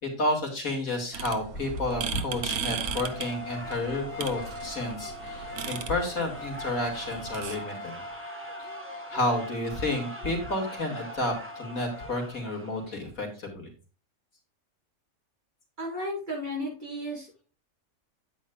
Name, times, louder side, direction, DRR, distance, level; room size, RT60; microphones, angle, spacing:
voice 1, 0.0-7.9 8.6-8.7 9.1-13.7, left 1 dB, 75° left, 0 dB, 2.7 m, -31 dB
sound 1, 1.1-7.6, right 7 dB, 85° right, 1.4 m, -37 dB
sound 2, 2.1-13.1, right 1 dB, 10° right, 1.1 m, -44 dB
sound 3, 3.1-12.1, left 3 dB, 60° left, 1.1 m, -43 dB
voice 2, 15.8-17.4, equal, 35° right, -4 dB, 5.0 m, -34 dB
9.6 x 8.9 x 2.3 m, 0.35 s
omnidirectional pair, 1.5 m